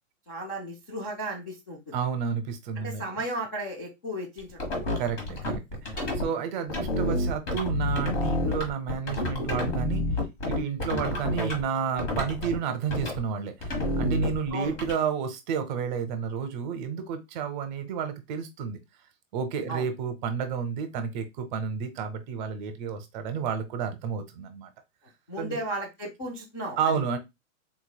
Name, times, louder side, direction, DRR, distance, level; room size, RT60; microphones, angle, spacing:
voice 1, 0.3-1.9 2.8-4.8 6.0-6.1 14.5-14.7 19.7-19.8 25.3-26.8, right 1 dB, 15° left, -3 dB, 0.3 m, -35 dB
voice 2, 1.9-3.0 5.0-10.0 10.4-18.8 19.3-24.7 25.4-25.6 26.8-27.2, right 7 dB, 35° right, 8 dB, 0.7 m, -31 dB
sound 1, 4.4-6.2 6.7-11.6 12.0-12.6 12.9-13.2 13.6-14.9, left 1 dB, 35° left, 1.4 m, -29 dB
3.8 x 3.0 x 2.2 m, 0.21 s
hypercardioid pair, 145°, 41 cm